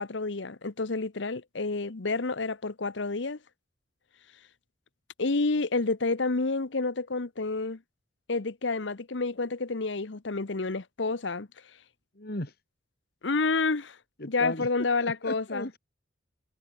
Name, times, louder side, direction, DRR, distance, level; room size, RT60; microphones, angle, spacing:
voice 1, 0.0-3.4 5.2-7.8 8.3-11.5 13.2-14.0 14.3-15.7, left 3 dB, 65° left, 1.0 m, -29 dB
voice 2, 12.2-12.5 14.2-14.7 15.0-15.8, left 1 dB, 50° left, 2.7 m, -35 dB
head